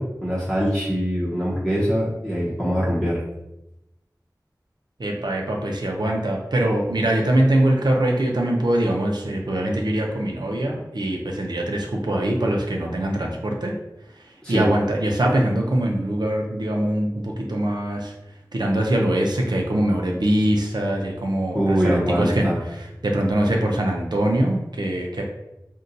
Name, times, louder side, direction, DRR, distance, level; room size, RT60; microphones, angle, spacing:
voice 1, 0.0-3.2 14.4-14.7 21.5-22.6, equal, 10° left, -8 dB, 0.8 m, -23 dB
voice 2, 5.0-13.7 14.5-18.1 18.5-25.2, right 1 dB, 80° right, 0 dB, 0.6 m, -23 dB
2.7 x 2.2 x 3.8 m, 0.91 s
wide cardioid pair, 40°, 7 cm